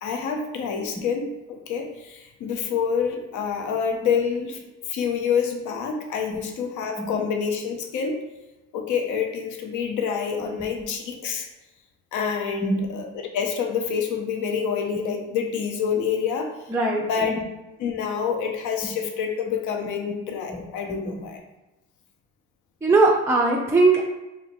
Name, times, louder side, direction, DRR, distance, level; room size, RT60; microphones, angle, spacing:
voice 1, 0.0-4.6 4.9-8.2 8.7-11.5 12.1-16.5 17.1-17.4 17.8-21.4, left 6 dB, 75° left, 3 dB, 0.6 m, -27 dB
voice 2, 16.7-17.4 20.5-20.6 22.8-24.1, right 3 dB, 10° right, -2 dB, 0.4 m, -21 dB
2.8 x 2.6 x 4.0 m, 1.0 s
cardioid pair, 90°, 30 cm